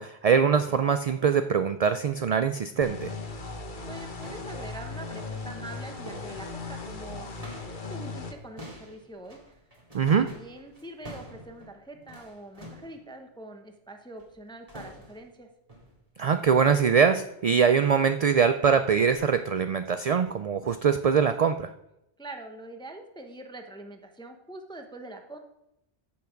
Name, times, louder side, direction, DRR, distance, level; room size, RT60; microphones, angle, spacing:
voice 1, 0.0-3.1 9.9-10.3 16.2-21.7, right 6 dB, 65° right, 10 dB, 0.3 m, -23 dB
sound 1, 2.8-8.3, left 3 dB, 45° left, 1.2 m, -38 dB
sound 2, 3.8-7.9 8.2-13.0 14.2-14.4 14.7-15.3 15.7-16.0 16.4-16.7 17.0-17.2 17.7-17.9 18.4-18.5 19.1-19.2, equal, 30° right, 2.3 m, -48 dB
voice 2, 3.9-7.3 7.7-9.6 10.1-15.5 22.2-25.4, right 1 dB, 5° left, 4 dB, 0.8 m, -44 dB
14.0 x 5.8 x 5.1 m, 0.85 s
omnidirectional pair, 1.2 m